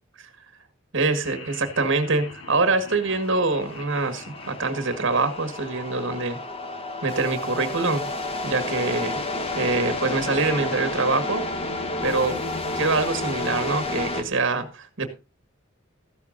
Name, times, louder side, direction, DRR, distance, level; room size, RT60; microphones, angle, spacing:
voice 1, 0.9-6.4 7.0-8.1 8.4-9.2 9.5-11.4 12.0-12.4 12.7-15.1, right 3 dB, 65° right, 1.7 m, -24 dB
Laughter, 1.2-7.4, left 4 dB, 75° left, 2.5 m, -45 dB
sound 1, 3.1-14.2, left 2 dB, 30° left, 1.9 m, -31 dB
14.5 x 12.5 x 2.6 m
head